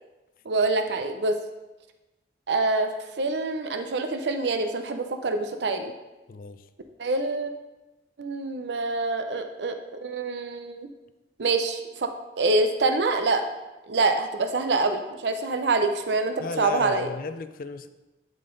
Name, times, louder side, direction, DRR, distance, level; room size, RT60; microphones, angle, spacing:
voice 1, 0.5-1.4 2.5-5.9 7.0-7.5 8.2-10.9 11.4-12.1 12.4-13.5 13.9-17.1, right 3 dB, 80° right, 7 dB, 0.6 m, -26 dB
voice 2, 6.3-6.6 16.4-17.9, left 4 dB, 50° left, 11 dB, 0.4 m, -35 dB
11.0 x 3.9 x 3.9 m, 1.1 s
head